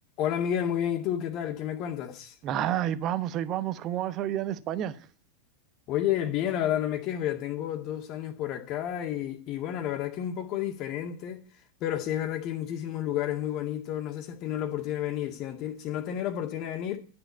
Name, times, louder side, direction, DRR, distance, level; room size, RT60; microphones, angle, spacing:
voice 1, 0.2-2.4 5.9-11.4 11.8-17.0, left 11 dB, 40° left, 2.0 m, -31 dB
voice 2, 2.4-5.0, right 11 dB, 35° right, 1.0 m, -29 dB
12.5 x 6.9 x 8.3 m
figure-of-eight pair, 90°, 0 cm